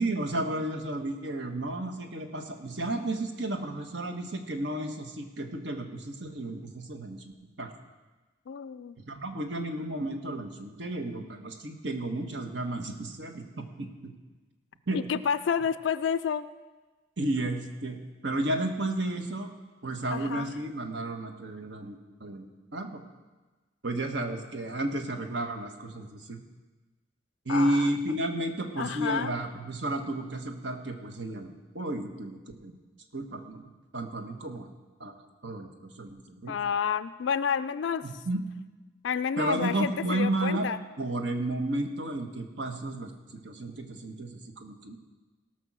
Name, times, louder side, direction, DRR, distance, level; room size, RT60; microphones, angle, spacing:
voice 1, 0.0-7.2 7.6-7.7 9.1-14.1 14.9-15.0 17.2-19.5 19.8-23.0 23.8-26.4 27.4-32.7 33.1-33.6 33.9-34.7 35.0-35.1 35.4-36.5 38.0-38.4 39.4-40.7 41.0-45.0, right 1 dB, 75° right, 4 dB, 1.4 m, -32 dB
voice 2, 8.5-9.0 14.9-16.5 20.1-20.5 27.5-27.9 28.8-29.3 36.5-38.1 39.0-40.8, left 7 dB, 85° left, 12 dB, 0.4 m, -30 dB
18.0 x 6.3 x 6.2 m, 1.2 s
head